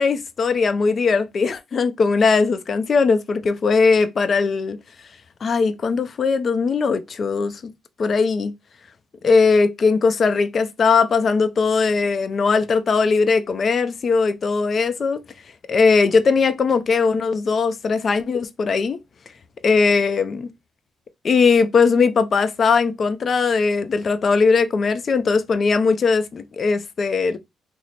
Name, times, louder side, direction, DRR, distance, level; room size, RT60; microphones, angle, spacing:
voice 1, 0.0-4.8 5.4-7.7 8.0-8.5 9.2-15.2 15.7-19.0 19.6-20.5 21.2-27.4, left 4 dB, 45° left, 0.4 m, -19 dB
3.1 x 2.0 x 4.0 m
cardioid pair, 90°, 0 cm